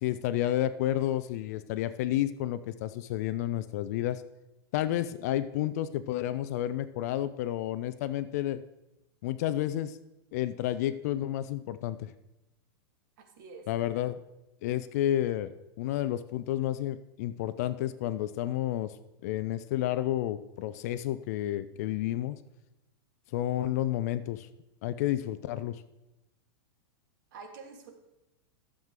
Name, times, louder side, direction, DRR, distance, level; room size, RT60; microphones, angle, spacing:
voice 1, 0.0-4.2 4.7-8.6 9.2-10.0 10.3-12.1 13.7-14.2 14.6-15.5 15.8-18.9 19.2-22.4 23.3-24.5 24.8-25.8, left 13 dB, 40° left, 13 dB, 0.3 m, -30 dB
voice 2, 13.2-13.7 27.3-27.9, right 4 dB, 50° right, 5 dB, 1.5 m, -47 dB
12.5 x 7.3 x 3.7 m, 0.93 s
supercardioid pair, 165°, 14 cm